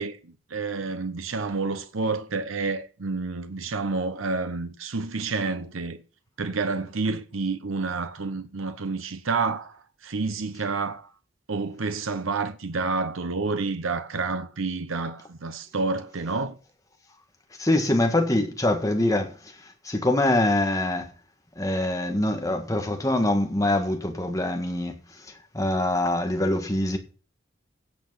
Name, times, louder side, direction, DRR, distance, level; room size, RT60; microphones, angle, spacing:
voice 1, 0.0-6.0 6.4-11.1 11.5-16.6, right 4 dB, 90° right, 0.9 m, -29 dB
voice 2, 17.6-19.5 19.8-21.1 21.6-27.0, left 1 dB, 15° left, 1.7 m, -24 dB
16.5 x 6.0 x 5.7 m
head